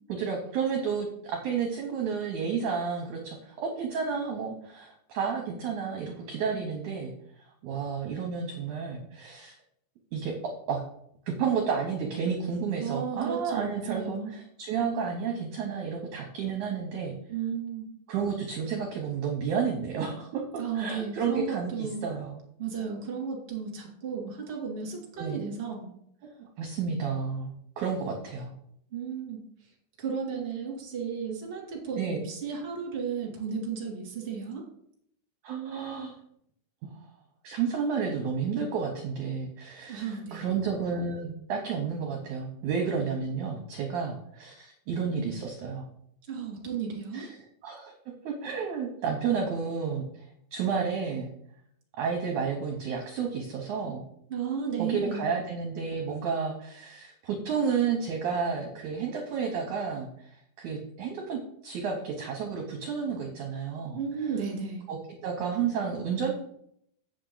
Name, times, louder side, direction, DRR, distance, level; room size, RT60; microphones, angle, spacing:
voice 1, 0.1-7.1 7.6-9.6 10.1-10.3 10.7-10.8 11.3-17.2 18.1-22.4 25.2-25.4 26.4-28.5 32.0-32.2 35.4-36.1 37.4-45.9 47.1-47.9 48.2-50.3 50.5-51.3 52.0-54.0 54.8-64.3 64.9-66.3, right 6 dB, 70° right, 1 dB, 1.9 m, -31 dB
voice 2, 12.8-14.3 17.3-17.9 20.6-22.0 22.6-25.9 28.9-29.4 30.0-34.6 39.9-40.4 46.3-47.3 54.3-55.2 63.9-64.8, right 6 dB, 20° right, -2 dB, 1.9 m, -34 dB
8.3 x 6.9 x 3.9 m, 0.71 s
omnidirectional pair, 4.5 m